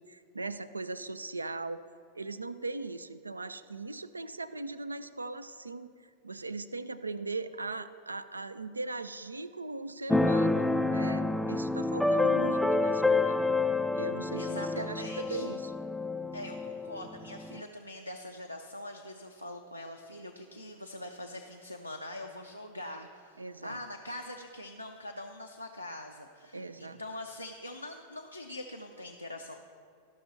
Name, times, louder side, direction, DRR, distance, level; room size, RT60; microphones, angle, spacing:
voice 1, 0.0-1.8 2.1-13.4 13.9-15.7 23.4-23.8 26.5-27.0, right 3 dB, 80° right, 13 dB, 0.3 m, -39 dB
Keyboard (musical), 10.1-17.6, left 3 dB, ahead, 0.3 m, -28 dB
voice 2, 14.4-15.5 16.3-29.5, left 1 dB, 90° left, 2 dB, 0.5 m, -43 dB
13.0 x 5.9 x 4.3 m, 2.2 s
figure-of-eight pair, 90°, 0 cm